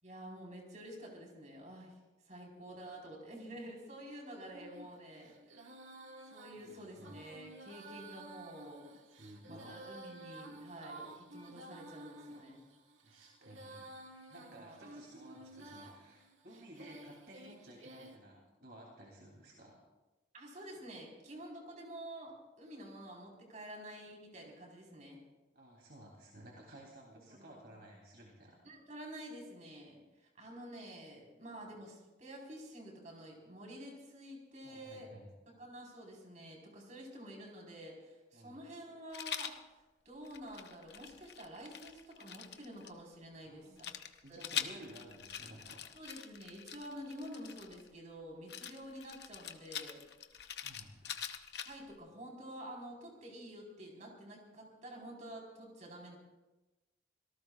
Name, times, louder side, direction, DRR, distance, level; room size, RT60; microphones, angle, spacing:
voice 1, 0.0-1.9 2.3-5.3 5.6-5.7 6.2-8.9 9.4-12.6 14.6-14.7 20.3-25.2 27.3-27.5 28.6-35.1 35.6-43.9 44.3-44.6 45.9-50.0 51.6-56.2, equal, 40° right, -1 dB, 4.4 m, -49 dB
Female singing, 4.5-18.2, right 2 dB, 90° right, 2.0 m, -53 dB
voice 2, 6.5-7.2 9.2-9.7 13.0-13.9 14.3-19.8 25.5-28.6 34.6-35.3 38.3-38.6 43.4-43.8 44.2-45.8 50.5-51.0, right 1 dB, 55° right, -2 dB, 3.1 m, -55 dB
Rattle, 39.1-39.6 40.2-42.9 43.8-47.9 48.5-51.9, left 9 dB, 60° left, 0.9 m, -44 dB
26.0 x 18.5 x 2.4 m, 1.1 s
head